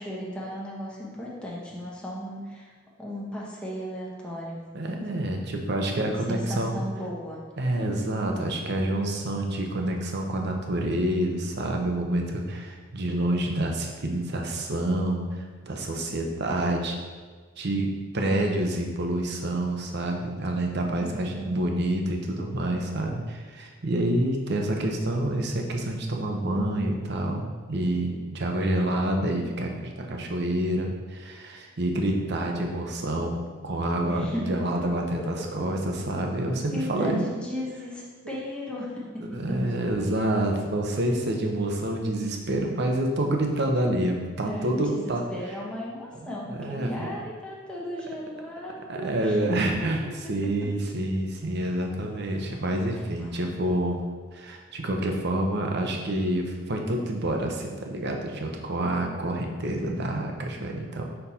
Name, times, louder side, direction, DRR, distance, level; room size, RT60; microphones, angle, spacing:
voice 1, 0.0-2.7 3.0-4.6 5.9-7.4 7.7-7.9 21.0-21.6 34.1-34.7 35.2-35.3 36.7-39.6 44.4-49.4 49.8-49.9 50.4-50.5 50.8-50.9 53.2-53.3, equal, 5° left, -5 dB, 1.0 m, -36 dB
voice 2, 4.7-6.8 7.6-17.0 17.6-33.4 33.6-37.2 39.2-45.2 46.2-47.2 48.9-50.0 50.3-54.0 54.3-61.0, right 1 dB, 60° right, 2 dB, 0.8 m, -28 dB
5.3 x 4.5 x 4.2 m, 1.5 s
head